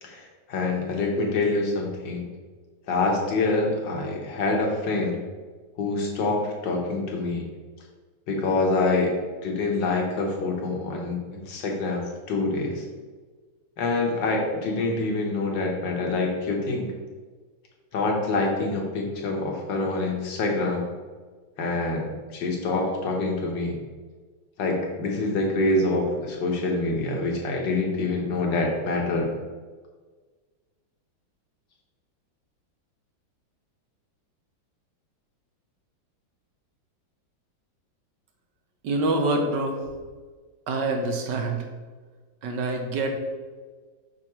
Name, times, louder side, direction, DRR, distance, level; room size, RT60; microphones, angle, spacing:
voice 1, 0.0-2.3 2.9-5.2 5.8-7.5 8.3-9.2 9.4-12.8 13.8-16.9 17.9-20.9 21.6-23.7 24.6-29.3, left 3 dB, 65° left, 0 dB, 1.8 m, -26 dB
voice 2, 38.8-39.8 40.7-41.7 42.4-43.2, right 2 dB, 65° right, 4 dB, 1.4 m, -26 dB
7.1 x 5.9 x 3.1 m, 1.4 s
omnidirectional pair, 2.2 m